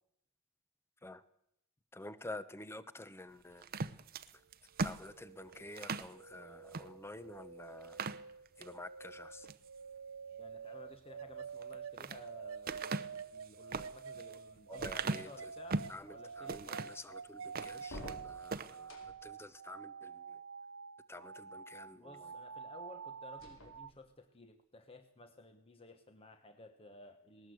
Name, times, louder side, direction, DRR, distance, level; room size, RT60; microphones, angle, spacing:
voice 1, 1.9-3.7 4.8-8.0 8.6-9.5 14.7-15.5 15.9-20.4 21.1-22.3, left 2 dB, 10° left, 14 dB, 0.9 m, -49 dB
sound 1, 3.6-6.1 6.7-6.9 7.3-7.4 7.8-8.7 9.2-9.7 11.5-12.2 12.7-16.0 16.5-17.0 17.4-18.2 18.5-18.8, right 4 dB, 45° right, 0.8 m, -40 dB
sound 2, 4.8-23.9, right 6 dB, 80° right, 0.7 m, -48 dB
voice 2, 10.4-15.8 16.1-16.9 21.9-27.5, left 2 dB, 25° left, 7 dB, 1.2 m, -56 dB
sound 3, 14.8-15.5 17.8-19.4 23.3-24.3, equal, 70° left, 4.3 m, -51 dB
19.0 x 18.5 x 8.0 m, 0.82 s
head